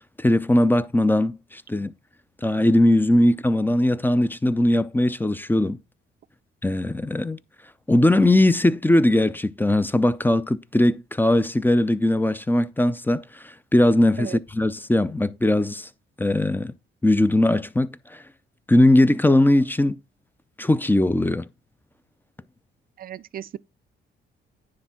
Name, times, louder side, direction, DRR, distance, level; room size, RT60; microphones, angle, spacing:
voice 1, 0.2-1.9 2.4-5.8 6.6-7.4 7.9-15.9 16.2-16.7 17.0-18.2 18.7-20.0 20.6-21.5, left 1 dB, 10° left, 0.5 m, -20 dB
voice 2, 23.0-23.6, right 10 dB, 45° right, 0.5 m, -35 dB
9.8 x 3.6 x 5.8 m
cardioid pair, 90°, 20 cm